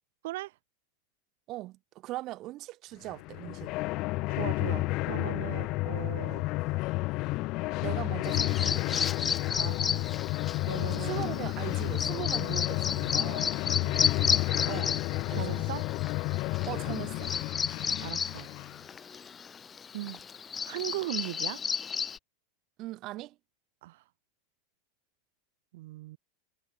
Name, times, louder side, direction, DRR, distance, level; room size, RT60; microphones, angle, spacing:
voice 1, 0.2-0.6 4.3-6.4 9.6-10.1 10.7-11.2 13.7-14.0 15.3-15.8 18.0-18.5 19.1-19.3 19.9-20.2 20.6-21.6 23.8-24.0 25.7-26.2, right 18 dB, 60° right, 1.0 m, -38 dB
voice 2, 1.5-3.7 7.8-9.0 11.0-13.5 14.7-15.7 16.7-17.3 22.8-23.4, right 17 dB, 30° right, 1.3 m, -40 dB
sound 1, 3.1-18.8, left 21 dB, 35° left, 0.8 m, -31 dB
Bird vocalization bird call bird song, 8.2-22.2, left 6 dB, 15° left, 1.2 m, -33 dB
supercardioid pair, 170°, 0 cm